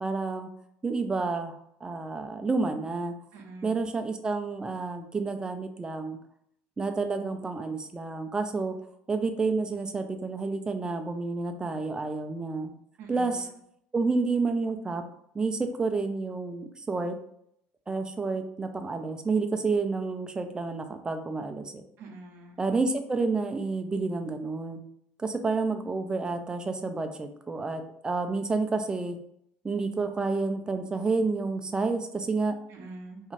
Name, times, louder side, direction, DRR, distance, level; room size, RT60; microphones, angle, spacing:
voice 1, 0.0-0.5 0.8-1.6 1.8-3.1 3.6-6.2 6.8-8.8 9.1-12.7 13.1-13.4 13.9-15.0 15.3-17.1 17.9-21.8 22.6-24.8 25.2-29.2 29.6-32.6, right 3 dB, 20° right, 7 dB, 0.4 m, -29 dB
voice 2, 3.3-3.9 13.0-13.4 22.0-22.6 32.7-33.3, right 2 dB, 65° right, 2 dB, 0.6 m, -44 dB
2.5 x 2.3 x 3.1 m, 0.71 s
supercardioid pair, 105°, 4 cm